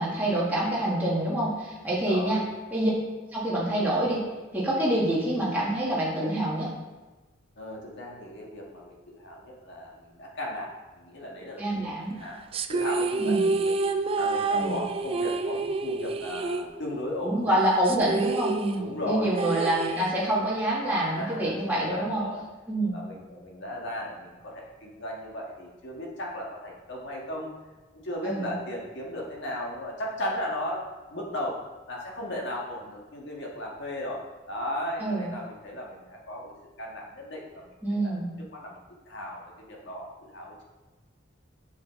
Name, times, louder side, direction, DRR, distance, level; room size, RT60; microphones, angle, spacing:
voice 1, 0.0-2.4 2.7-2.9 3.3-4.2 4.5-6.7 11.6-12.2 13.2-13.5 14.5-14.8 17.2-22.2 22.7-22.9 28.2-28.5 35.0-35.3 37.8-38.3, right 1 dB, 10° right, -7 dB, 1.4 m, -26 dB
voice 2, 2.0-2.4 7.6-11.6 12.1-12.4 12.7-13.8 14.2-17.5 18.8-19.8 21.0-22.4 22.9-27.5 27.9-36.5 36.8-38.2 38.5-38.8 39.0-40.6, left 1 dB, 60° left, -2 dB, 1.6 m, -36 dB
sound 1, 12.5-17.2 17.4-17.5 17.8-20.5, right 3 dB, 30° right, 0.3 m, -29 dB
7.6 x 5.7 x 3.6 m, 1.2 s
head